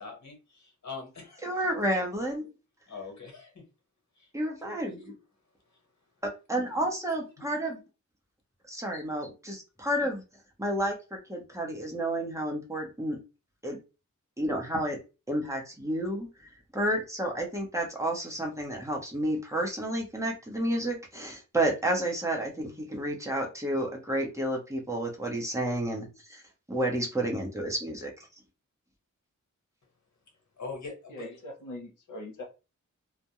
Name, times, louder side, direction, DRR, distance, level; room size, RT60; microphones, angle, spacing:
voice 1, 0.0-1.5 2.4-2.5 2.9-3.6 4.2-4.3 4.6-5.2 8.9-9.0 9.8-9.9 30.6-31.3, left 4 dB, 65° left, 1.1 m, -43 dB
voice 2, 1.4-2.4 4.3-5.1 6.2-7.7 8.7-10.2 10.6-13.2 13.6-13.8 14.4-15.0 15.3-16.3 16.7-26.4 26.7-28.1, right 1 dB, 10° right, 0.8 m, -31 dB
voice 3, 31.1-32.5, left 1 dB, 90° left, 0.8 m, -41 dB
2.3 x 2.1 x 2.8 m
wide cardioid pair, 120°, 30 cm